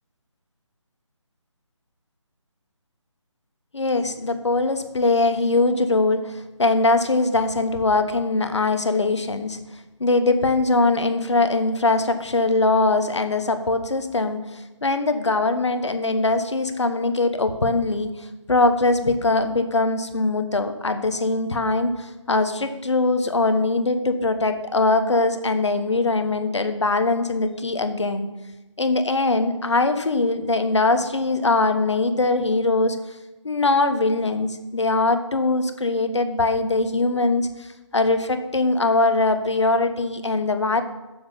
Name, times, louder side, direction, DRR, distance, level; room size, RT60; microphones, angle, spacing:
voice 1, 3.7-9.6 10.0-28.3 28.8-33.0 33.4-37.7 37.9-40.8, left 2 dB, 65° left, 9 dB, 1.1 m, -22 dB
9.2 x 7.2 x 5.5 m, 1.0 s
figure-of-eight pair, 155°, 16 cm